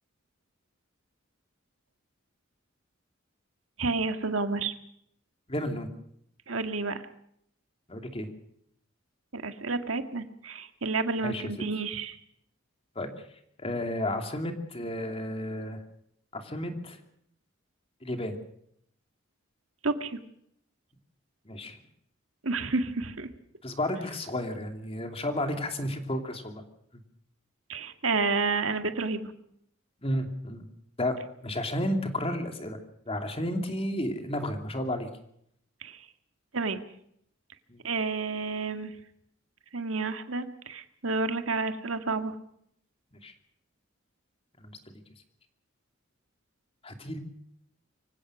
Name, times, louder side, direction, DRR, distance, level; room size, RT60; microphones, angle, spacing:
voice 1, 3.8-4.7 6.5-7.0 9.3-12.2 19.8-20.2 22.4-23.3 27.7-29.3 35.8-36.1 36.5-36.8 37.8-38.9 39.7-42.4, right 3 dB, 85° right, 8 dB, 1.9 m, -30 dB
voice 2, 5.5-5.9 7.9-8.3 11.2-11.5 12.9-13.1 13.6-15.8 16.3-17.0 18.0-18.4 21.4-21.8 23.6-26.6 30.0-30.7 31.0-31.1 31.4-32.8 33.1-35.1 37.7-37.8 43.1-43.3 44.6-45.0 46.8-47.2, left 1 dB, 30° left, 5 dB, 2.7 m, -32 dB
25.0 x 16.5 x 6.3 m, 0.70 s
head